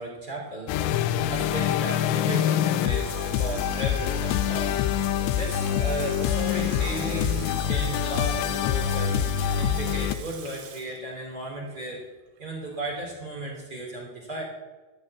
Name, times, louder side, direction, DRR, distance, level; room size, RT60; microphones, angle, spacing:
voice 1, 0.0-9.1 9.5-12.0 12.4-14.4, right 1 dB, 25° right, -4 dB, 3.0 m, -35 dB
sound 1, 0.7-10.2, left 9 dB, 85° left, 2.6 m, -25 dB
Water tap faucet / Sink (filling or washing), 2.3-12.1 12.4-12.5, right 6 dB, 60° right, 3.4 m, -45 dB
16.0 x 5.5 x 9.8 m, 1.2 s
omnidirectional pair, 5.7 m